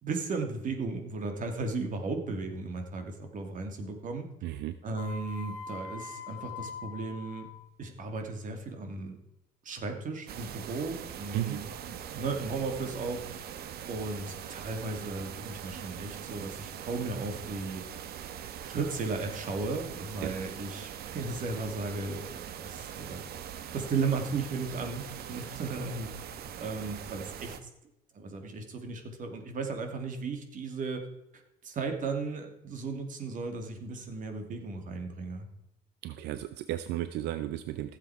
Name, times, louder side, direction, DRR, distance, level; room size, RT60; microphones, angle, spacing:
voice 1, 0.0-4.3 4.8-7.5 7.8-9.2 9.6-13.2 13.9-17.8 18.6-23.2 23.7-25.0 25.3-26.1 26.6-27.5 28.1-31.0 31.6-35.5, right 3 dB, 50° right, 5 dB, 2.5 m, -35 dB
voice 2, 4.4-4.8 11.3-11.6 20.2-20.3 36.0-38.0, right 13 dB, 85° right, 11 dB, 0.6 m, -34 dB
sound 1, 5.0-7.6, left 5 dB, 90° left, 1.3 m, -42 dB
sound 2, 10.3-27.6, right 9 dB, 65° right, 1.1 m, -42 dB
15.5 x 7.6 x 4.8 m, 0.89 s
cardioid pair, 110°, 17 cm